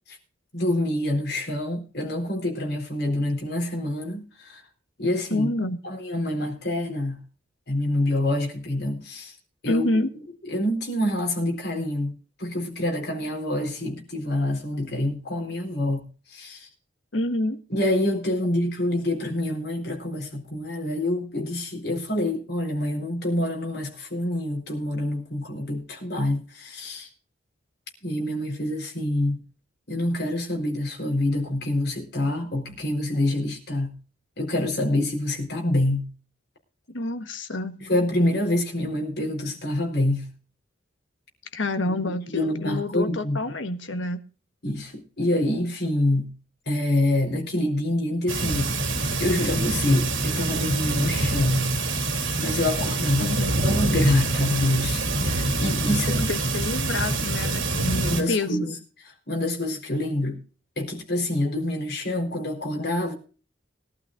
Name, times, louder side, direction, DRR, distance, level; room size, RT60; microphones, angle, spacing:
voice 1, 0.5-4.6 5.0-5.5 5.8-7.2 7.7-9.3 9.6-10.1 10.4-12.1 12.4-16.7 17.7-27.1 28.0-29.4 29.9-34.0 34.4-36.1 37.8-40.3 42.1-43.4 44.6-46.4 46.7-48.8 49.2-51.7 52.4-53.3 53.6-56.3 58.0-58.7 59.3-60.4 60.8-63.1, left 1 dB, 55° left, 4.1 m, -26 dB
voice 2, 5.3-5.8 9.7-10.1 17.1-17.6 36.9-37.8 41.5-44.2 53.2-53.6 56.3-58.7, left 2 dB, 80° left, 1.4 m, -28 dB
sound 1, 48.3-58.2, right 2 dB, 85° right, 2.9 m, -25 dB
21.5 x 12.0 x 2.5 m
head